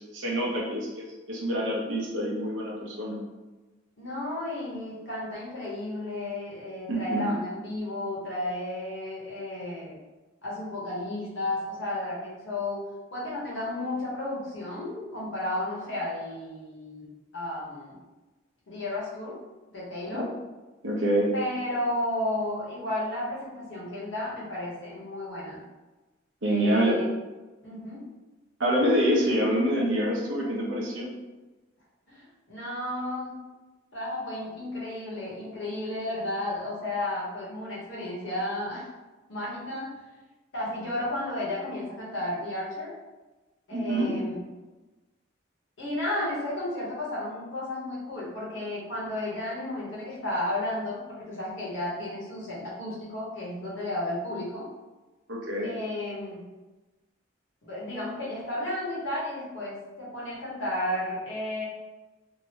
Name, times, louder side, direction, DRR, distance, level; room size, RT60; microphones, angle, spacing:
voice 1, 0.0-3.2 6.9-7.3 20.8-21.3 26.4-27.0 28.6-31.1 43.7-44.1 55.3-55.7, equal, 70° right, -3 dB, 0.8 m, -26 dB
voice 2, 4.0-10.0 10.4-12.8 13.1-18.0 18.7-19.4 19.7-20.2 21.3-25.6 26.4-27.1 27.6-28.0 32.1-33.3 33.9-38.9 39.3-39.9 40.5-42.9 43.7-44.4 45.8-54.7 55.6-56.4 57.6-61.6, left 1 dB, 65° left, -6 dB, 1.0 m, -33 dB
2.9 x 2.6 x 2.8 m, 1.2 s
head